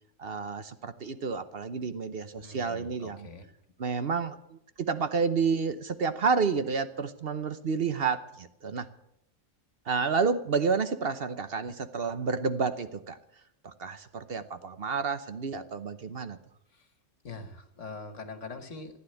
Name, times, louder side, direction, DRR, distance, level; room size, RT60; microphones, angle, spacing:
voice 1, 0.2-3.3 3.8-8.9 9.9-13.2 13.6-16.4, right 5 dB, 50° right, 11 dB, 0.9 m, -30 dB
voice 2, 2.4-3.5 16.7-16.9 17.2-19.0, left 3 dB, 60° left, 8 dB, 1.9 m, -43 dB
15.0 x 9.9 x 8.2 m, 0.76 s
omnidirectional pair, 1.5 m